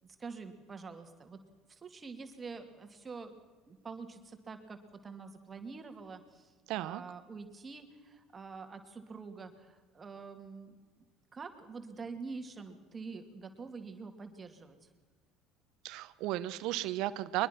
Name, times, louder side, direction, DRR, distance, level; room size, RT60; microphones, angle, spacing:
voice 1, 0.0-1.4 1.7-3.3 3.7-10.7 11.3-14.9, right 4 dB, 30° right, 6 dB, 2.6 m, -46 dB
voice 2, 6.7-7.0 15.8-17.5, right 15 dB, 70° right, 16 dB, 0.9 m, -34 dB
23.0 x 21.0 x 6.0 m, 1.4 s
supercardioid pair, 80°, 0 cm